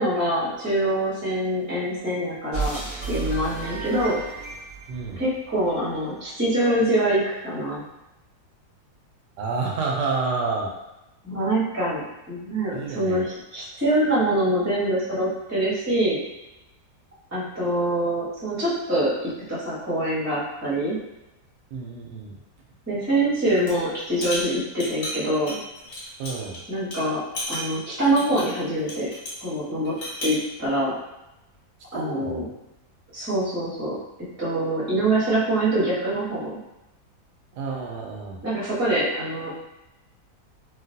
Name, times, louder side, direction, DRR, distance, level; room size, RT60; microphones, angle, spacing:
voice 1, 0.0-2.8 3.1-4.2 5.2-7.8 11.2-12.0 12.3-13.3 13.5-16.2 17.3-21.0 22.9-25.6 26.7-27.2 27.5-29.1 29.4-29.9 30.2-30.9 31.9-32.4 33.1-33.9 34.4-36.6 38.4-39.5, right 1 dB, 10° right, -9 dB, 0.9 m, -24 dB
sound 1, 2.5-5.9, right 5 dB, 45° left, 1.2 m, -32 dB
voice 2, 4.9-5.2 9.4-10.7 12.7-13.3 21.7-22.3 26.2-26.6 31.9-32.5 37.5-38.4, right 4 dB, 85° right, 0 dB, 1.2 m, -29 dB
sound 2, 23.5-23.8 24.1-26.6 26.9-27.0 27.3-29.4 29.8-30.4, left 1 dB, 70° left, 1.7 m, -33 dB
3.1 x 2.6 x 2.6 m, 0.96 s
omnidirectional pair, 1.8 m